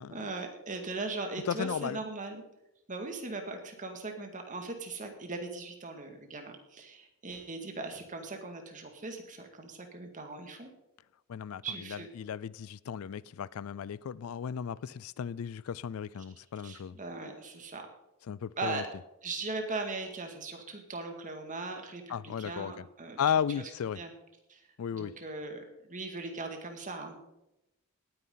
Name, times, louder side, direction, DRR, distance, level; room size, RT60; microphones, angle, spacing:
voice 1, 0.1-2.4 2.9-10.7 11.6-12.1 16.6-17.9 18.6-18.8 19.2-23.2 23.6-23.7 24.0-24.1 24.5-24.6 24.9-27.2, right 3 dB, 35° right, 2.1 m, -39 dB
voice 2, 1.5-2.0 11.3-17.0 18.3-18.8 22.1-22.8 23.2-24.0 24.8-25.1, left 8 dB, 65° left, 0.4 m, -35 dB
18.5 x 9.7 x 3.9 m
head